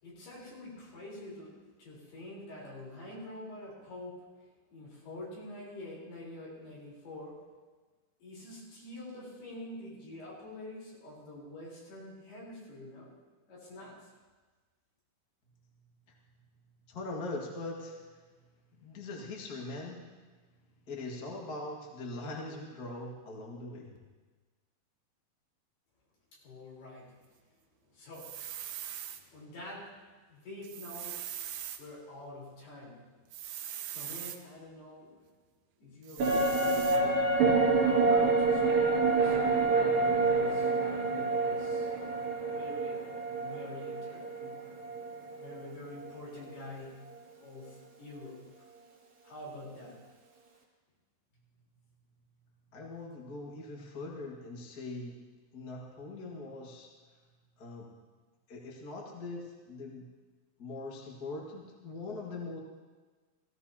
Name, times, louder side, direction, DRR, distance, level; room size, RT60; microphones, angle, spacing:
voice 1, 0.0-4.3 4.7-7.5 8.2-13.2 13.5-14.1 26.4-27.2 27.9-28.6 29.1-30.0 30.3-31.3 31.8-33.1 33.8-35.2 35.8-37.3 37.7-41.9 42.4-43.0 43.4-44.6 45.3-47.0 47.4-48.7 49.2-50.0, left 1 dB, 70° left, -5 dB, 6.1 m, -47 dB
voice 2, 16.9-18.0 18.8-20.1 20.9-24.0 52.7-55.2 55.5-56.9 57.6-57.9 58.5-60.0 60.6-62.6, left 2 dB, 40° left, -2 dB, 1.3 m, -41 dB
sound 1, 28.1-29.2 30.6-31.8 33.3-34.4 36.0-37.0, right 10 dB, 80° right, 2.5 m, -41 dB
sound 2, 36.2-45.7 46.0-46.1, right 3 dB, 45° right, 2.6 m, -27 dB
16.5 x 16.5 x 2.9 m, 1.3 s
omnidirectional pair, 4.7 m